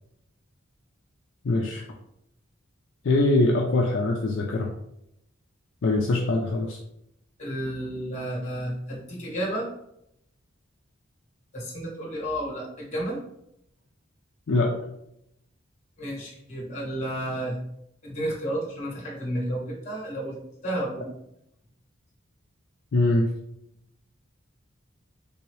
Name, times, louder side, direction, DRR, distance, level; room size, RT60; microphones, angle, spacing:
voice 1, 1.4-1.8 3.0-4.7 5.8-6.8 14.5-14.7 22.9-23.3, left 2 dB, 60° left, 0 dB, 0.4 m, -23 dB
voice 2, 7.4-9.7 11.5-13.2 16.0-17.6 18.0-20.4 20.6-21.1, right 1 dB, 35° left, -3 dB, 1.1 m, -31 dB
3.4 x 2.8 x 3.1 m, 0.79 s
head